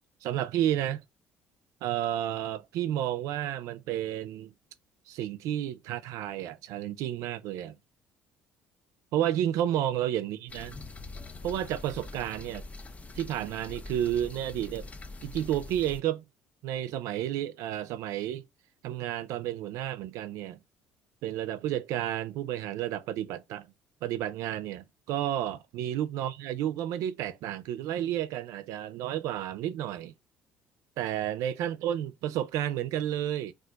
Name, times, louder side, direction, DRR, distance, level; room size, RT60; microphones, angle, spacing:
voice 1, 0.2-1.0 1.8-4.5 5.1-7.8 9.1-10.7 11.4-12.7 13.1-14.9 15.2-16.2 16.6-18.4 18.8-20.6 21.2-23.7 24.0-30.1 31.0-33.5, right 11 dB, 75° right, 0.4 m, -31 dB
sound 1, 10.5-16.0, left 3 dB, 25° left, 0.4 m, -44 dB
2.4 x 2.3 x 3.8 m
supercardioid pair, 75°, 5 cm